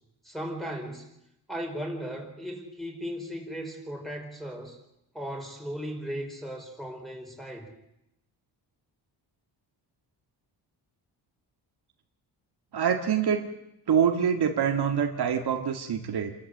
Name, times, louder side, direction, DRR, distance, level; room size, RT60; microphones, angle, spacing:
voice 1, 0.2-1.0 1.5-4.8 5.1-7.7, equal, ahead, 0 dB, 4.7 m, -36 dB
voice 2, 12.7-13.5 13.9-16.3, right 7 dB, 65° right, 4 dB, 1.9 m, -25 dB
28.0 x 13.5 x 7.8 m, 0.85 s
cardioid pair, 120°, 43 cm